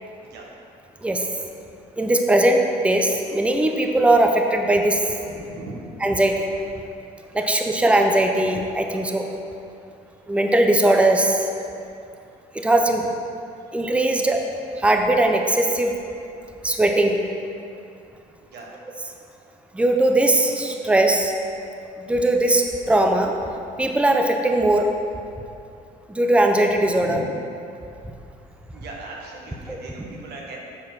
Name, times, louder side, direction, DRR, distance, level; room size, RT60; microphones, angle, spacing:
voice 1, 2.0-5.1 6.0-6.5 7.3-9.3 10.3-11.5 12.5-13.0 13.7-14.4 14.8-15.9 16.6-17.2 19.7-21.3 22.0-23.3 23.8-24.9 26.1-27.2 29.7-29.8, right 1 dB, 5° right, 3 dB, 0.6 m, -19 dB
voice 2, 5.3-6.1 7.3-7.5 12.9-13.0 18.4-18.7 26.9-27.3 28.7-30.6, right 2 dB, 70° right, -2 dB, 1.5 m, -38 dB
7.5 x 4.4 x 6.0 m, 2.6 s
cardioid pair, 110°, 17 cm